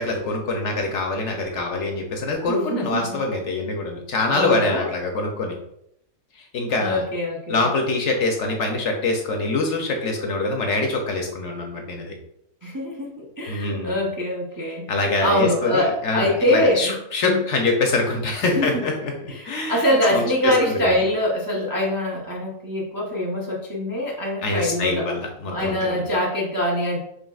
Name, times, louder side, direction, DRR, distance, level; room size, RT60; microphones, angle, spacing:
voice 1, 0.0-5.6 6.4-7.0 7.5-12.1 13.5-14.0 14.9-19.1 19.4-20.9 24.4-26.1, left 3 dB, 60° left, 2 dB, 0.8 m, -24 dB
voice 2, 2.4-3.2 4.3-4.9 6.8-7.6 12.6-14.9 15.2-17.4 18.4-18.8 19.3-25.1 25.5-27.0, left 1 dB, 25° right, -3 dB, 0.4 m, -24 dB
5.2 x 3.2 x 2.3 m, 0.77 s
omnidirectional pair, 1.5 m